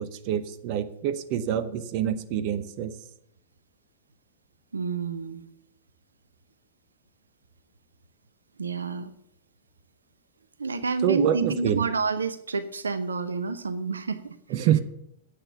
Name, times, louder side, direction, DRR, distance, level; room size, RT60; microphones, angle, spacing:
voice 1, 0.0-3.0 11.0-11.9 14.5-14.8, right 10 dB, 40° right, 13 dB, 0.8 m, -26 dB
voice 2, 4.7-5.4 8.6-9.1 10.6-14.4, right 4 dB, 70° right, 12 dB, 0.8 m, -29 dB
10.0 x 8.1 x 7.0 m, 0.75 s
figure-of-eight pair, 100°, 0 cm